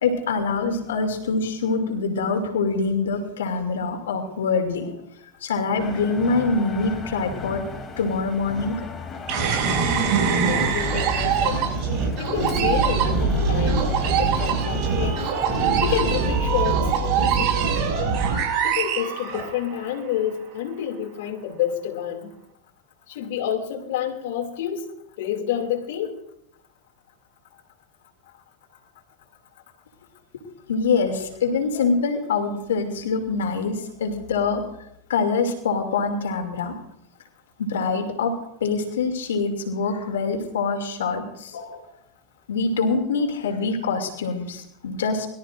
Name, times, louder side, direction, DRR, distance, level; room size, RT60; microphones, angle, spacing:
voice 1, 0.0-4.9 5.4-7.6 8.0-8.8 30.7-34.6 35.1-36.7 37.6-38.3 38.6-41.8 42.5-45.3, left 4 dB, 85° left, 5 dB, 2.7 m, -24 dB
sound 1, 5.8-16.7, left 3 dB, 25° left, 2.9 m, -36 dB
sound 2, 9.3-19.9, right 5 dB, 50° right, 5.9 m, -23 dB
voice 2, 10.3-11.6 12.2-15.2 15.8-16.9 17.1-17.7 18.6-22.3 23.1-24.9 25.2-26.1, left 9 dB, 70° left, 2 dB, 2.5 m, -29 dB
22.5 x 13.5 x 2.6 m, 0.77 s
hypercardioid pair, 110°, 0 cm